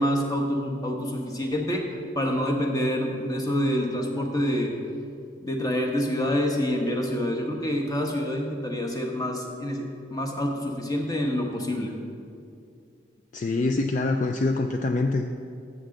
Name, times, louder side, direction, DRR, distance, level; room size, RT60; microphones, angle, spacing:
voice 1, 0.0-1.8 2.2-4.7 5.4-11.9, equal, 20° left, 2 dB, 1.0 m, -27 dB
voice 2, 13.3-15.3, left 2 dB, 40° left, 5 dB, 0.4 m, -25 dB
13.5 x 7.4 x 3.8 m, 2.4 s
head